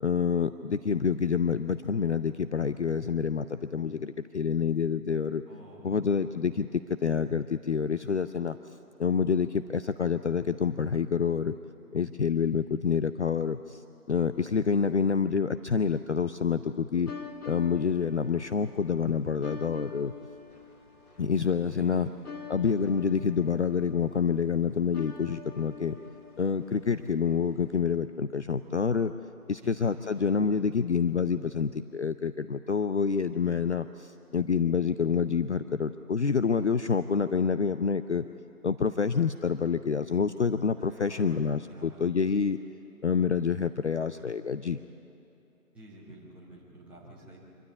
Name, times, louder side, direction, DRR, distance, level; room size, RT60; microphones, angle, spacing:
voice 1, 0.0-5.4 5.8-8.6 9.0-11.5 11.9-13.8 14.1-17.1 17.5-20.1 21.2-22.1 22.5-26.0 26.4-29.1 29.5-38.2 38.6-42.6 43.0-44.8, left 6 dB, 50° left, 12 dB, 0.5 m, -27 dB
voice 2, 5.5-6.4 21.7-22.3 29.6-30.5 40.8-42.1 45.7-47.4, right 1 dB, 5° right, -10 dB, 3.2 m, -50 dB
sound 1, 17.1-28.0, left 5 dB, 75° left, 2.2 m, -46 dB
25.5 x 12.5 x 9.6 m, 2.9 s
figure-of-eight pair, 150°, 45 cm